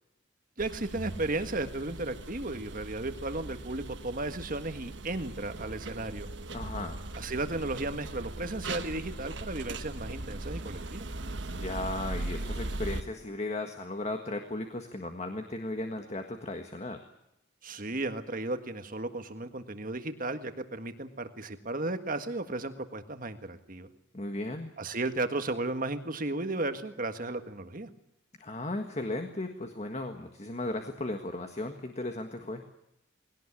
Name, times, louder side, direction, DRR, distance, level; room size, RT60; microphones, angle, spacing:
voice 1, 0.6-6.3 7.1-11.1 17.6-23.9 24.8-27.9, right 2 dB, 40° right, 8 dB, 1.7 m, -34 dB
sound 1, 0.6-13.0, right 2 dB, 60° right, 1.4 m, -39 dB
voice 2, 6.5-7.0 11.4-17.1 24.1-24.7 28.4-32.6, left 2 dB, 35° left, 5 dB, 1.6 m, -36 dB
20.5 x 18.0 x 9.9 m, 0.84 s
head